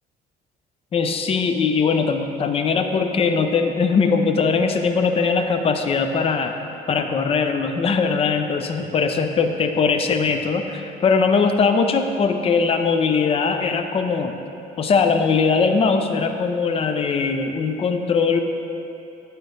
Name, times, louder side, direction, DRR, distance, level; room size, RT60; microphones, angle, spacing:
voice 1, 0.9-6.6 6.9-14.3 14.8-18.4, left 5 dB, 35° left, 6 dB, 0.5 m, -20 dB
9.0 x 4.0 x 3.9 m, 2.8 s
cardioid pair, 110°, 17 cm